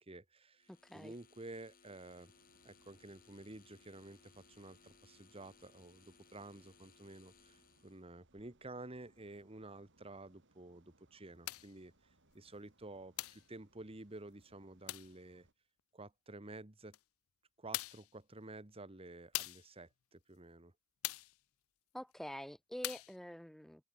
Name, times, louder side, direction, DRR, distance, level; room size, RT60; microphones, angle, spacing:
voice 1, 0.0-2.3 2.6-11.9 12.3-15.5 15.9-17.0 17.6-20.7, right 2 dB, 25° right, 1.5 m, -52 dB
sound 1, 0.6-8.0, left 5 dB, 40° left, 3.1 m, -66 dB
voice 2, 0.8-1.1 21.9-23.8, equal, ahead, 0.3 m, -46 dB
sound 2, 2.1-15.5, right 2 dB, 55° right, 4.8 m, -73 dB
sound 3, 11.4-11.7 13.2-13.5 14.9-15.2 16.9-17.0 17.7-18.1 19.3-19.7 21.0-21.4 22.8-23.2, left 17 dB, 75° left, 0.5 m, -41 dB
head